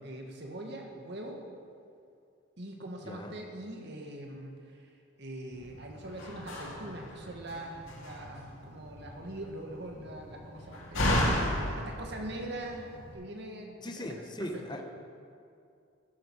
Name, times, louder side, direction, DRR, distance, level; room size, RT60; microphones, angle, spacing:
voice 1, 0.0-1.4 2.6-4.9 5.2-11.3 11.7-14.8, right 1 dB, 55° right, 2 dB, 1.6 m, -42 dB
voice 2, 3.0-3.4 13.8-14.8, left 1 dB, 20° left, 4 dB, 0.8 m, -39 dB
Slam, 5.5-13.1, left 1 dB, 75° left, 2.2 m, -35 dB
13.5 x 10.0 x 4.7 m, 2.4 s
head